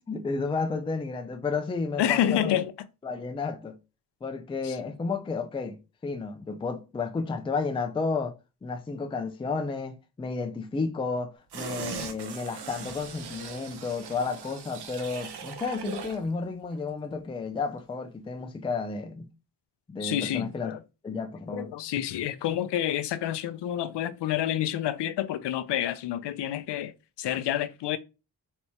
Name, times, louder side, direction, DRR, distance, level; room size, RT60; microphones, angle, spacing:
voice 1, 0.1-2.6 3.0-3.8 4.2-8.3 8.6-19.3 19.9-20.7 21.0-21.7, left 4 dB, 15° left, 0.4 m, -32 dB
voice 2, 2.0-2.7 4.6-4.8 20.0-20.8 21.5-26.9 27.2-28.0, left 11 dB, 80° left, 0.6 m, -28 dB
sound 1, 11.5-16.3 16.6-16.7, right 6 dB, 70° right, 0.9 m, -40 dB
4.2 x 3.4 x 2.9 m
wide cardioid pair, 135°, 41 cm